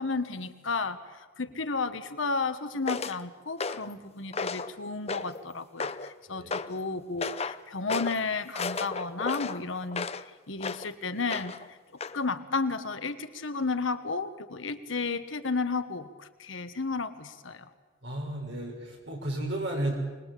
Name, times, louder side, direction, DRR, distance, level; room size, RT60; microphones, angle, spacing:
voice 1, 0.0-10.1 10.5-11.8 12.1-17.7, left 4 dB, 75° left, 10 dB, 1.4 m, -32 dB
sound 1, 2.9-3.2 3.6-3.9 4.3-4.7 5.1-5.4 5.8-6.1 6.5-6.7 7.2-7.6 7.9-8.2 8.5-10.2 10.6-10.9 11.3-11.7 12.0-12.2, left 4 dB, 30° left, 0.7 m, -34 dB
voice 2, 18.0-20.0, right 1 dB, 60° right, 0 dB, 6.8 m, -33 dB
25.0 x 20.5 x 8.5 m, 1.3 s
head